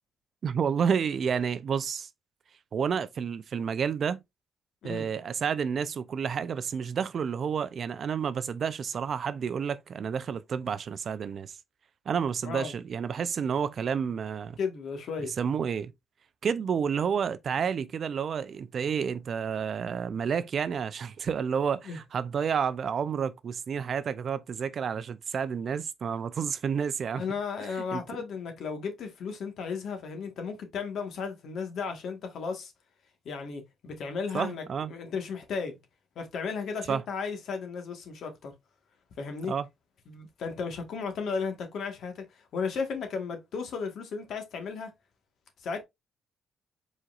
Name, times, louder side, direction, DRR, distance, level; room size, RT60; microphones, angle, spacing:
voice 1, 0.4-2.1 2.7-4.2 4.8-11.5 12.1-14.6 15.4-15.9 16.4-27.2 27.9-28.0 34.3-34.9 36.9-37.0 39.5-39.7, right 7 dB, 55° right, 0.5 m, -30 dB
voice 2, 12.4-12.7 14.6-15.3 21.8-22.0 27.2-32.7 33.2-34.6 34.9-35.8 36.1-38.5 39.2-39.5 40.1-44.9 45.6-45.8, left 5 dB, 70° left, 1.5 m, -34 dB
4.7 x 4.0 x 2.4 m
cardioid pair, 90°, 0 cm